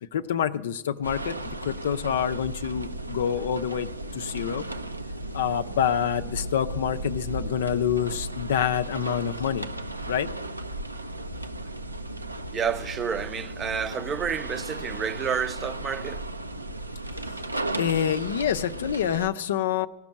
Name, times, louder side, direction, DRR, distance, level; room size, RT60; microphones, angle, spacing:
voice 1, 0.0-4.7 5.3-9.7 10.1-10.3 17.7-19.9, left 9 dB, 60° left, 0.5 m, -27 dB
sound 1, 1.0-19.3, right 1 dB, 85° right, 0.6 m, -35 dB
voice 2, 12.5-16.2, right 7 dB, 25° right, 0.6 m, -30 dB
17.5 x 6.1 x 9.9 m
figure-of-eight pair, 90°, 0 cm